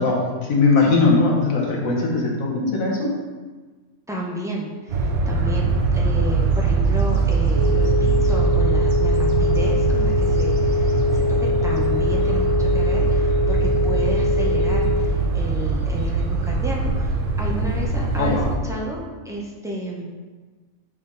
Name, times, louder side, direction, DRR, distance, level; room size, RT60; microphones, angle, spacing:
voice 1, 0.0-3.1 18.2-18.5, left 3 dB, 70° left, -1 dB, 1.5 m, -20 dB
voice 2, 4.1-20.0, equal, 5° right, -3 dB, 0.5 m, -32 dB
sound 1, 4.9-18.6, right 4 dB, 85° right, 1.1 m, -21 dB
sound 2, 7.5-14.9, left 4 dB, 65° right, 1.7 m, -24 dB
6.0 x 4.1 x 3.9 m, 1.4 s
omnidirectional pair, 1.5 m